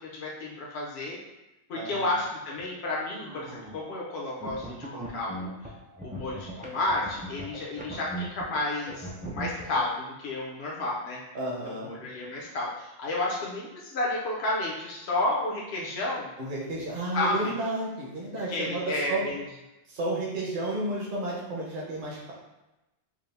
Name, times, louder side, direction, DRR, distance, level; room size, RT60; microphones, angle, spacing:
voice 1, 0.1-1.2 1.7-5.5 6.0-11.2 11.7-16.3 17.1-17.5 18.5-19.4, left 2 dB, 80° left, -4 dB, 1.0 m, -31 dB
voice 2, 1.7-2.1 11.3-11.9 16.4-19.2 19.9-22.3, right 2 dB, 55° right, -5 dB, 1.0 m, -32 dB
sound 1, 3.2-3.9 4.4-8.6 8.9-9.8, right 2 dB, 10° right, 0.3 m, -39 dB
4.9 x 2.0 x 3.3 m, 0.99 s
omnidirectional pair, 1.1 m